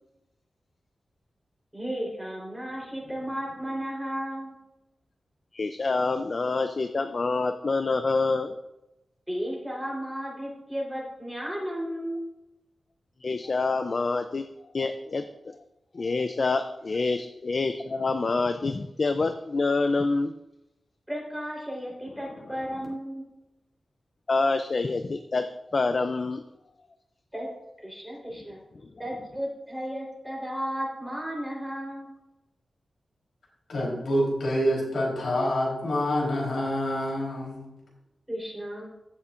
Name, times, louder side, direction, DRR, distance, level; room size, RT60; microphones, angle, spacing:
voice 1, 1.7-4.5 9.3-12.2 21.1-23.2 27.3-27.5 27.8-28.6 29.0-32.1 38.3-38.9, equal, 5° right, -4 dB, 3.7 m, -34 dB
voice 2, 5.5-8.6 13.2-14.4 14.7-15.6 15.9-20.3 24.3-25.4 25.7-26.4, left 3 dB, 45° left, 8 dB, 0.4 m, -26 dB
voice 3, 33.7-37.6, equal, 75° left, -3 dB, 3.6 m, -27 dB
15.0 x 7.2 x 2.5 m, 0.95 s
wide cardioid pair, 125°, 0 cm